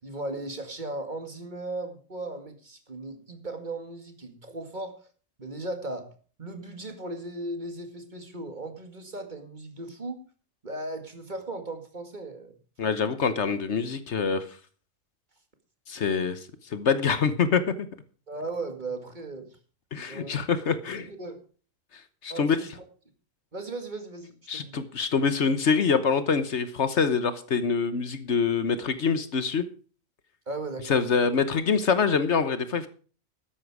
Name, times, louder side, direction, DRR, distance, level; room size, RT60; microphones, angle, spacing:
voice 1, 0.0-5.0 5.4-6.1 6.4-10.2 10.6-12.5 18.3-19.5 20.1-20.4 20.9-21.4 22.3-22.7 23.5-24.9 30.5-31.0, right 2 dB, 35° right, 6 dB, 2.2 m, -37 dB
voice 2, 12.8-14.5 15.9-17.9 19.9-21.1 22.2-22.6 24.5-29.6 30.9-32.9, left 5 dB, 65° left, 12 dB, 1.3 m, -25 dB
13.5 x 10.0 x 4.8 m, 0.40 s
omnidirectional pair, 1.3 m